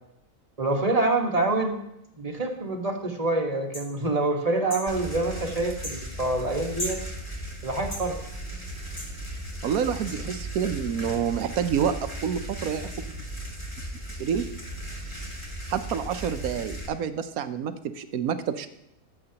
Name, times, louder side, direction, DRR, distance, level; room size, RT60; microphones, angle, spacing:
voice 1, 0.6-1.8 2.2-7.0 7.6-8.2, right 2 dB, 25° right, 1 dB, 1.4 m, -26 dB
sound 1, 3.7-3.9 4.7-4.9 5.8-6.0 6.8-7.0 7.9-8.1 9.0-9.1 10.1-10.2, left 1 dB, 50° left, 3.6 m, -34 dB
sound 2, 4.9-16.9, right 1 dB, 15° left, 2.4 m, -37 dB
voice 2, 9.6-12.9 14.2-14.4 15.7-18.7, right 8 dB, 70° right, 10 dB, 1.1 m, -28 dB
18.5 x 7.7 x 2.9 m, 0.83 s
omnidirectional pair, 1.7 m